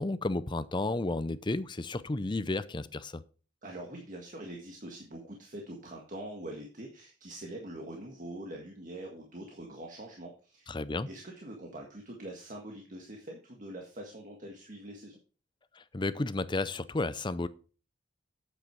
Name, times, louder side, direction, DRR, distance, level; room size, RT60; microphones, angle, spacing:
voice 1, 0.0-3.2 10.7-11.1 15.8-17.5, left 2 dB, 25° left, 0.6 m, -32 dB
voice 2, 3.6-10.7 11.1-15.2, right 1 dB, 45° right, 1.7 m, -44 dB
9.1 x 7.8 x 4.6 m
head